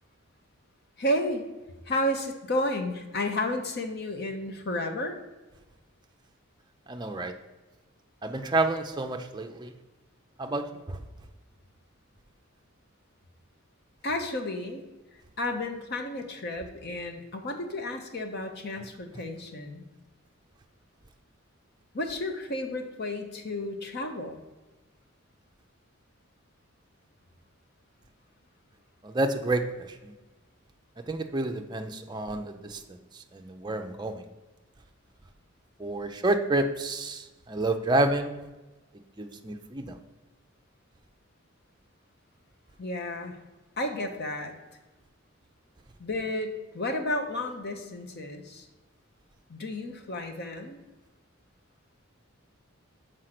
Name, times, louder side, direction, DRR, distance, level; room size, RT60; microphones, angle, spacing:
voice 1, 1.0-1.5 1.9-5.1 14.0-14.8 15.4-19.9 21.9-24.4 42.8-43.4 43.8-44.5 46.0-48.7 49.5-50.8, left 1 dB, 50° left, 5 dB, 0.9 m, -32 dB
voice 2, 6.9-7.3 8.2-9.7 10.4-11.0 29.0-30.1 31.1-34.2 35.8-38.5 39.2-40.0, right 2 dB, 20° right, 5 dB, 0.5 m, -29 dB
6.4 x 5.0 x 5.8 m, 1.2 s
head